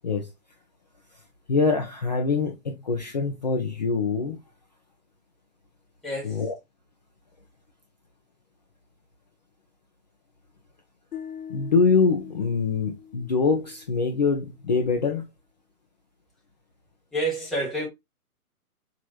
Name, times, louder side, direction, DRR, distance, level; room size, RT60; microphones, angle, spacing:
voice 1, 1.5-4.4 6.2-6.5 11.5-15.2, left 4 dB, 30° left, 0.5 m, -24 dB
voice 2, 6.0-6.4 17.1-17.9, right 1 dB, ahead, 0.7 m, -28 dB
sound 1, 11.1-14.3, left 8 dB, 70° left, 0.8 m, -42 dB
4.9 x 2.9 x 2.3 m
figure-of-eight pair, 130°, 45 cm